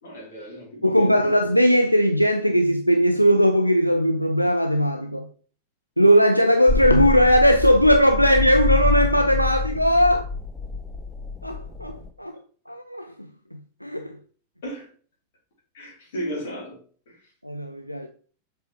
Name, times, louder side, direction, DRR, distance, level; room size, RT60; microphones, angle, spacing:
voice 1, 0.0-1.2 14.6-14.9 15.7-16.8 17.1-17.3, equal, 55° left, 2.8 m, -35 dB
voice 2, 0.8-5.3 6.0-10.3 11.4-12.4 12.7-14.2 17.4-18.1, equal, 90° left, 0.4 m, -19 dB
sound 1, 6.7-12.1, left 2 dB, 10° left, 0.7 m, -26 dB
7.1 x 4.5 x 2.9 m
figure-of-eight pair, 90°, 0 cm